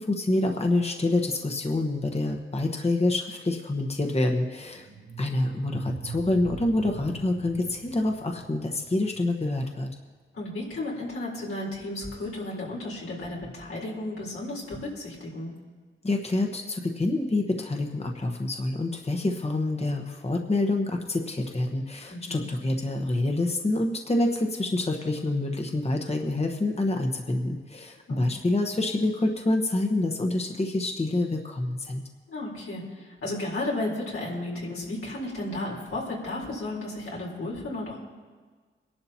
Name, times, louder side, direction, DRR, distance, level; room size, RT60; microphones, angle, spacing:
voice 1, 0.0-4.9 5.2-9.9 16.0-32.0, left 2 dB, 30° left, 3 dB, 1.2 m, -27 dB
sound 1, 4.6-9.7, right 6 dB, 80° right, 1.1 m, -43 dB
voice 2, 10.3-15.5 22.1-22.4 28.1-28.2 32.3-38.0, left 2 dB, 85° left, -5 dB, 4.0 m, -33 dB
23.0 x 11.5 x 2.9 m, 1.5 s
cardioid pair, 65°, 21 cm